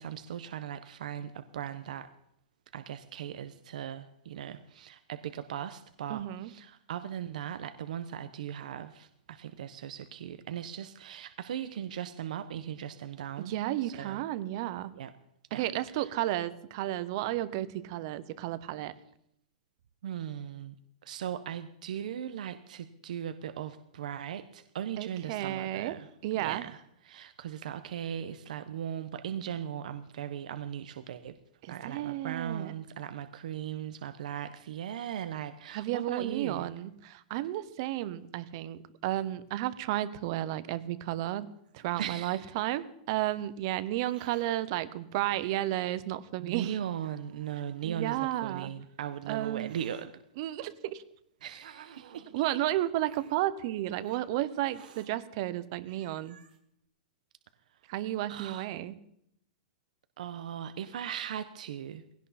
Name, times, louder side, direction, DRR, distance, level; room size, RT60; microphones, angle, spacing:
voice 1, 0.0-2.1 2.7-13.5 13.8-14.2 14.9-15.1 15.5-15.6 15.9-16.1 20.0-20.7 21.0-26.1 26.3-31.4 31.6-36.7 42.0-42.5 46.4-50.2 51.4-52.3 58.3-58.7 60.2-62.0, right 9 dB, 60° right, 10 dB, 1.0 m, -38 dB
voice 2, 6.1-6.5 13.4-14.9 15.5-18.9 25.0-25.9 26.2-26.6 31.6-32.7 35.7-46.7 47.8-48.7 49.3-49.8 50.4-51.0 52.3-56.4 57.9-59.0, right 14 dB, 35° right, 15 dB, 0.9 m, -33 dB
Hiss, 41.3-42.9 43.9-44.5 45.4-45.5 46.3-46.4 47.0-48.0 48.8-50.1 50.9-52.4 53.0-53.4 54.0-54.2 54.7-55.1 55.6-55.7 55.9-56.6, right 8 dB, 80° right, 2.5 m, -57 dB
19.5 x 16.5 x 4.2 m, 0.75 s
supercardioid pair, 175°, 5 cm